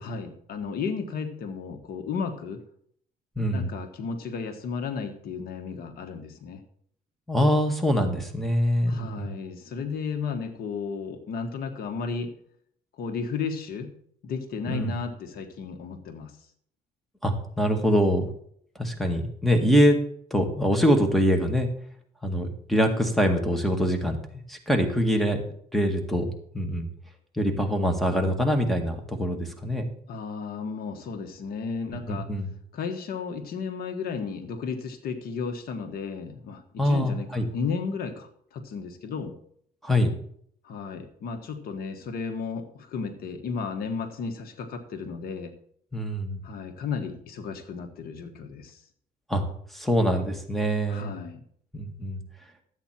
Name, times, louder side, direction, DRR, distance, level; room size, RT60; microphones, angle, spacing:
voice 1, 0.0-2.6 3.5-6.6 8.9-12.3 13.0-13.9 14.2-16.3 30.1-32.3 32.7-39.3 40.6-45.5 46.4-48.8 50.9-51.4, left 5 dB, 65° left, 7 dB, 1.6 m, -33 dB
voice 2, 3.4-3.7 7.3-9.3 14.7-15.0 17.2-18.3 18.8-20.0 20.3-21.7 22.2-24.2 24.5-25.4 25.7-26.9 27.4-29.8 31.9-32.5 36.8-37.5 39.8-40.1 45.9-46.4 49.3-49.4 49.7-51.1 51.7-52.2, equal, ahead, 3 dB, 1.8 m, -24 dB
13.0 x 8.6 x 4.5 m, 0.63 s
cardioid pair, 110°, 17 cm